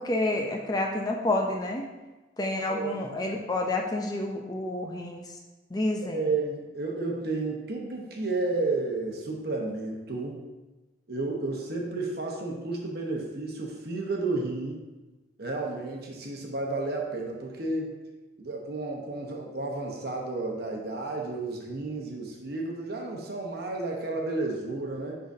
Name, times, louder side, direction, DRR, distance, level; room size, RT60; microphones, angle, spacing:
voice 1, 0.0-1.9 2.4-5.2 5.7-6.2, left 2 dB, 20° left, 1 dB, 0.5 m, -29 dB
voice 2, 2.7-3.1 6.0-10.4 11.1-14.8 15.4-18.0 18.4-25.2, right 3 dB, 55° right, 0 dB, 1.0 m, -32 dB
10.0 x 4.0 x 2.7 m, 1.2 s
head